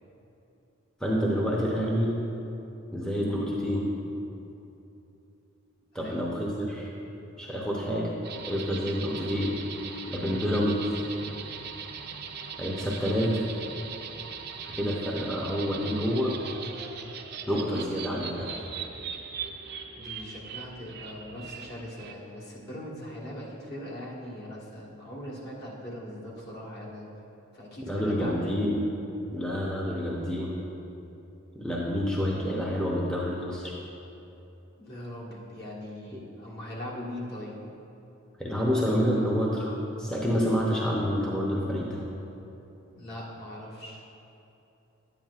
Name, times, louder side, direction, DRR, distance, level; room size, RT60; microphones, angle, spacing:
voice 1, 1.0-2.1 2.9-3.9 5.9-6.9 7.4-8.1 8.5-9.5 10.1-10.8 12.6-13.4 14.6-16.3 17.5-18.6 27.9-28.8 29.3-30.6 31.5-33.7 38.4-42.0, equal, 5° left, -5 dB, 0.7 m, -28 dB
voice 2, 5.9-6.3 10.2-10.5 19.9-27.1 27.5-28.7 34.8-37.5 42.9-44.0, left 1 dB, 55° left, -5 dB, 1.5 m, -40 dB
sound 1, 8.2-22.1, right 6 dB, 50° right, 0.5 m, -40 dB
10.0 x 8.9 x 2.4 m, 2.9 s
head